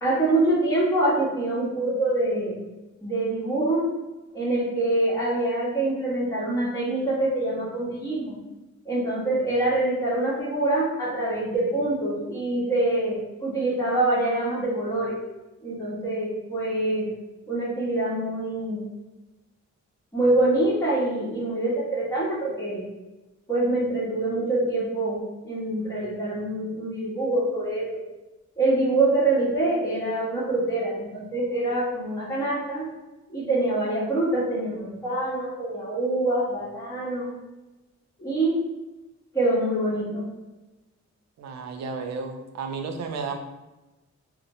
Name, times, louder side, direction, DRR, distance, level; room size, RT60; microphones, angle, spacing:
voice 1, 0.0-2.6 3.0-3.8 4.3-8.4 8.8-15.2 15.6-17.1 17.5-18.8 20.1-22.8 23.5-25.2 25.4-28.0 28.6-32.9 33.3-37.3 38.2-38.6 39.3-40.2, right 2 dB, 10° left, -8 dB, 0.8 m, -25 dB
voice 2, 41.4-43.4, right 4 dB, 65° right, 4 dB, 0.4 m, -32 dB
2.8 x 2.0 x 2.7 m, 1.1 s
cardioid pair, 100°, 30 cm